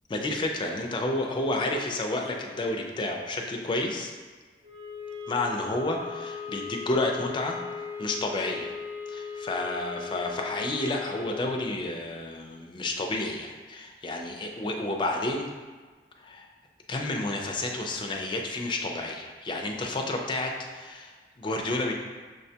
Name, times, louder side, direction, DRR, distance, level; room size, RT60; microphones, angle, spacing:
voice 1, 0.1-4.1 5.3-7.6 8.0-8.7 9.1-15.5 16.2-16.5 16.9-21.9, left 2 dB, 25° left, 1 dB, 0.4 m, -30 dB
sound 1, 4.6-11.6, left 5 dB, 45° right, 0.7 m, -38 dB
6.3 x 2.2 x 2.7 m, 1.4 s
head